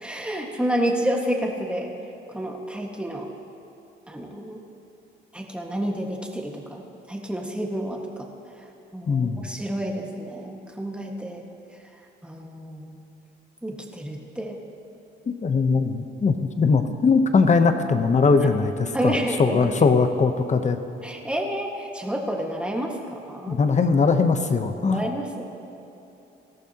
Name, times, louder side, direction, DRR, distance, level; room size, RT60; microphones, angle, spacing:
voice 1, 0.0-1.9 2.3-3.3 4.1-4.6 5.3-6.8 7.1-8.3 8.9-11.4 12.2-13.0 13.6-14.6 18.4-18.5 18.9-19.7 21.0-23.6 24.8-25.4, right 1 dB, 5° right, 0 dB, 1.7 m, -29 dB
voice 2, 9.1-9.4 15.3-20.8 23.5-25.1, left 4 dB, 35° left, 8 dB, 0.9 m, -21 dB
18.5 x 13.5 x 2.9 m, 2.9 s
cardioid pair, 90°, 20 cm